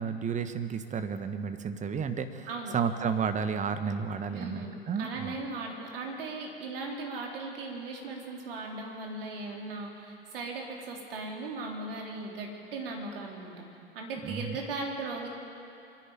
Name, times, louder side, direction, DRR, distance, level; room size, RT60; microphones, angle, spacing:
voice 1, 0.0-2.5 2.7-5.3 14.2-14.6, right 6 dB, 25° right, 9 dB, 1.4 m, -32 dB
voice 2, 4.3-13.7 14.0-15.3, right 3 dB, 65° right, 0 dB, 3.6 m, -38 dB
25.0 x 11.0 x 9.5 m, 2.8 s
figure-of-eight pair, 85°, 30 cm